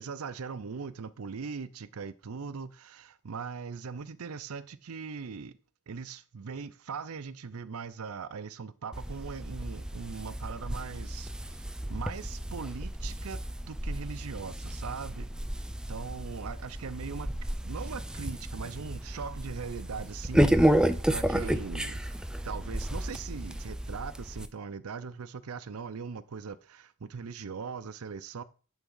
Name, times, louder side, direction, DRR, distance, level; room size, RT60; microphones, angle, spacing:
voice 1, 0.0-5.6 5.9-11.6 11.9-15.4 15.9-22.0 22.4-28.4, right 5 dB, 85° right, 0.6 m, -40 dB
sound 1, 8.9-24.5, right 1 dB, 5° right, 0.4 m, -31 dB
10.5 x 3.6 x 5.5 m
head